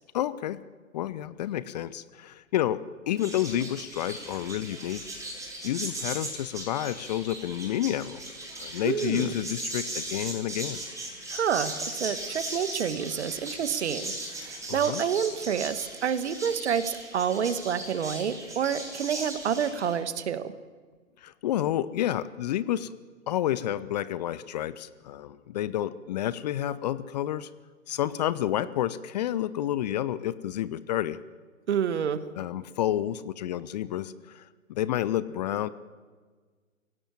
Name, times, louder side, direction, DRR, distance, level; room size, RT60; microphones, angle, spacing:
voice 1, 0.1-0.6 0.9-5.3 5.6-10.8 14.7-15.0 21.2-22.9 23.3-27.5 27.9-31.2 32.4-35.7, left 12 dB, 30° left, 17 dB, 0.6 m, -30 dB
sound 1, 3.2-20.0, right 1 dB, 5° right, 7.1 m, -38 dB
voice 2, 8.8-9.3 11.3-20.5 31.7-32.3, right 8 dB, 55° right, 13 dB, 1.6 m, -28 dB
24.0 x 17.0 x 9.2 m, 1.5 s
figure-of-eight pair, 115°, 40 cm